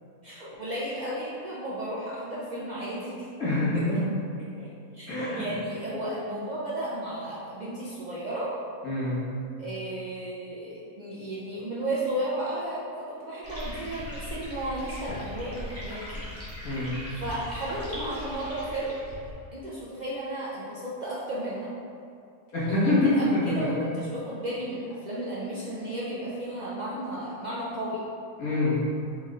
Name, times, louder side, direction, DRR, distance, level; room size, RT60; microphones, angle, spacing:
voice 1, 0.2-3.3 3.7-4.0 4.4-4.7 4.9-8.5 9.6-16.2 16.6-16.9 17.2-18.9 19.5-21.7 22.7-28.0, right 1 dB, 75° right, -8 dB, 0.4 m, -34 dB
voice 2, 3.4-4.0 5.1-5.5 8.8-9.2 16.6-17.0 22.5-23.5 28.4-28.8, left 2 dB, 80° left, -10 dB, 1.9 m, -25 dB
sound 1, 13.4-19.3, left 1 dB, 10° left, 0.9 m, -39 dB
4.2 x 4.1 x 2.4 m, 2.5 s
omnidirectional pair, 1.5 m